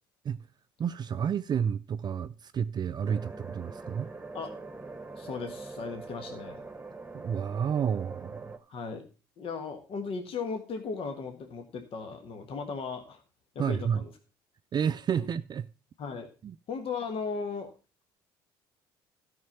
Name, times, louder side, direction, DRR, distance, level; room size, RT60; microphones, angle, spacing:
voice 1, 0.8-4.1 7.2-8.6 13.6-14.0 14.7-15.7 16.4-16.6, right 7 dB, 35° right, 0.4 m, -30 dB
sound 1, 3.0-8.6, right 3 dB, 15° right, 1.3 m, -43 dB
voice 2, 5.2-6.6 8.7-9.0 9.4-13.2 13.5-14.1 16.0-16.3 16.7-17.7, left 5 dB, 55° left, 1.4 m, -36 dB
12.5 x 5.7 x 5.5 m
hypercardioid pair, 65°, 12 cm